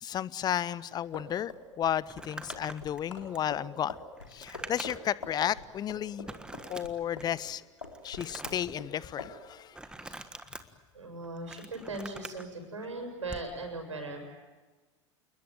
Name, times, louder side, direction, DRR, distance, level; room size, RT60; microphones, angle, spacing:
voice 1, 0.0-4.0 4.3-6.3 6.7-7.6 8.0-9.8, left 10 dB, 25° left, 21 dB, 0.7 m, -33 dB
sound 1, 1.1-7.5 7.8-8.9 9.2-9.4, left 3 dB, 80° left, 4.0 m, -44 dB
Crumpling crinkling, 2.1-5.2 5.6-5.7 6.3-7.4 7.8-8.7 9.7-10.6 11.2-12.4 13.2-13.5, right 2 dB, 5° right, 1.5 m, -44 dB
voice 2, 10.9-14.2, right 2 dB, 80° right, 4 dB, 7.0 m, -39 dB
28.5 x 21.0 x 9.2 m, 1.3 s
figure-of-eight pair, 85°, 16 cm